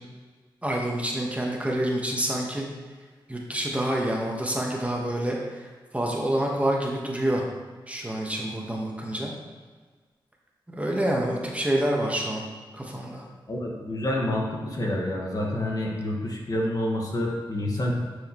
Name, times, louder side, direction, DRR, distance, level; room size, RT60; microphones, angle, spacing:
voice 1, 0.6-2.6 3.3-5.7 5.9-7.4 7.9-9.3 10.7-12.4 12.7-13.2, right 1 dB, 15° right, -1 dB, 1.4 m, -27 dB
voice 2, 13.5-17.9, left 1 dB, 45° left, -2 dB, 1.6 m, -28 dB
10.5 x 4.9 x 3.1 m, 1.4 s
cardioid pair, 60°, 9 cm